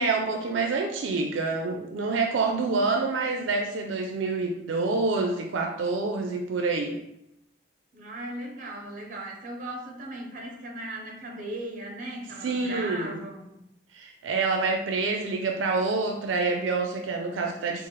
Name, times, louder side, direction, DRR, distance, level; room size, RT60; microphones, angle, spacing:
voice 1, 0.0-7.0 12.4-13.2 13.9-17.9, right 3 dB, 80° right, 3 dB, 0.4 m, -27 dB
voice 2, 7.9-13.6, right 1 dB, 45° right, 1 dB, 0.7 m, -37 dB
3.8 x 2.4 x 3.2 m, 0.83 s
head